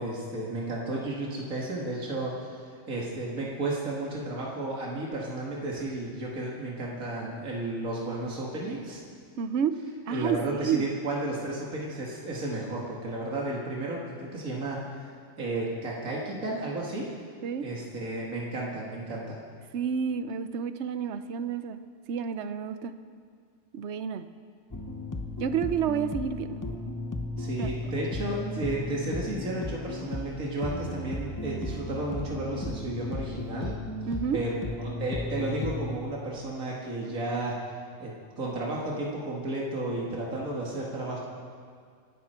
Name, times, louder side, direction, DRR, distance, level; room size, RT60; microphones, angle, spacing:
voice 1, 0.0-9.0 10.1-15.1 15.4-17.1 17.6-19.4 27.4-33.8 34.3-37.6 38.0-41.2, right 2 dB, 75° right, -4 dB, 2.5 m, -33 dB
voice 2, 9.4-9.7 10.1-10.4 10.6-10.9 17.4-17.7 19.7-21.8 22.1-22.9 23.7-24.2 25.4-26.6 27.6-27.7 34.1-34.4, right 7 dB, 60° right, 10 dB, 1.0 m, -29 dB
sound 1, 24.7-36.0, left 2 dB, 20° left, 0.6 m, -35 dB
26.5 x 12.0 x 4.5 m, 2.1 s
omnidirectional pair, 1.4 m